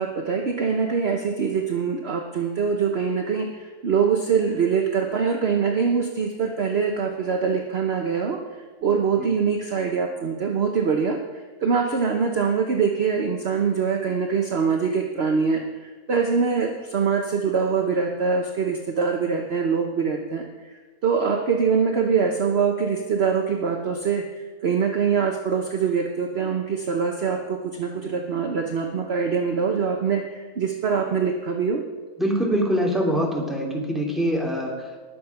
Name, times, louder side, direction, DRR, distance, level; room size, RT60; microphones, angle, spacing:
voice 1, 0.0-8.4 8.8-20.7 21.0-31.8, right 6 dB, 45° right, 3 dB, 1.1 m, -24 dB
voice 2, 32.2-35.0, equal, ahead, -1 dB, 2.6 m, -24 dB
20.0 x 7.3 x 5.8 m, 1.4 s
omnidirectional pair, 1.6 m